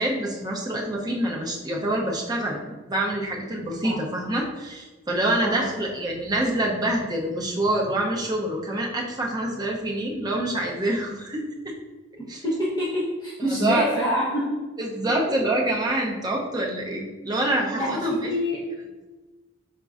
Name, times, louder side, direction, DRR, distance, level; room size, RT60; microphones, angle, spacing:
voice 1, 0.0-11.7 12.3-12.4 13.5-13.9 14.8-18.2, right 1 dB, 20° right, -1 dB, 0.6 m, -26 dB
voice 2, 5.4-5.7 12.4-14.6 15.3-15.5 17.7-18.7, equal, 20° left, -10 dB, 1.0 m, -27 dB
5.1 x 3.6 x 2.5 m, 1.2 s
head